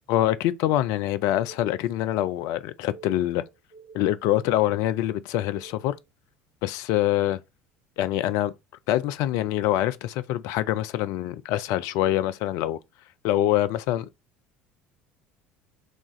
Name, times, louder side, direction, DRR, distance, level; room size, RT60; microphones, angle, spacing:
voice 1, 0.1-3.4 3.9-6.0 6.6-7.4 8.0-8.5 8.9-12.8 13.2-14.1, left 13 dB, 55° left, 0.4 m, -25 dB
sound 1, 1.2-6.0, right 5 dB, 80° right, 3.1 m, -51 dB
6.2 x 2.4 x 3.0 m
figure-of-eight pair, 65°, 6 cm